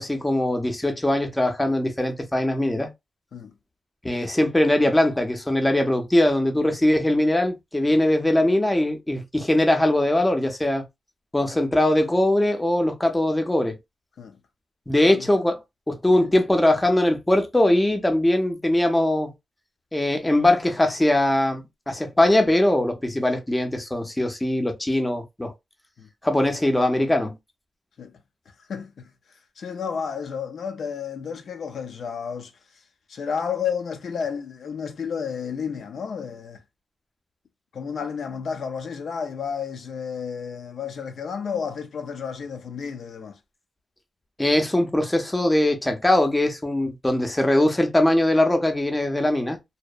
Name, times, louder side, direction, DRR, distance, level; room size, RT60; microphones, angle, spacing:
voice 1, 0.0-2.9 4.0-10.8 11.3-13.8 14.9-15.6 15.9-19.3 19.9-25.5 26.2-27.4 44.4-49.6, left 1 dB, 10° left, 0.5 m, -21 dB
voice 2, 28.7-29.1 29.6-32.5 33.1-36.6 37.7-43.4, left 6 dB, 70° left, 0.4 m, -31 dB
2.7 x 2.0 x 2.2 m
wide cardioid pair, 160°, 0 cm